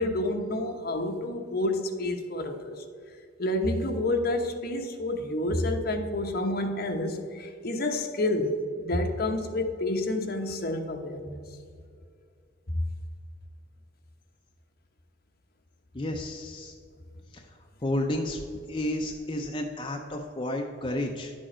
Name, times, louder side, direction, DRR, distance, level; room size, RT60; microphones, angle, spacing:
voice 1, 0.0-2.8 3.4-11.4 12.7-12.8, left 1 dB, 50° left, 5 dB, 1.0 m, -29 dB
voice 2, 15.9-16.7 17.3-18.4 18.7-21.3, left 1 dB, 25° left, 1 dB, 0.6 m, -31 dB
11.0 x 7.5 x 4.3 m, 2.3 s
head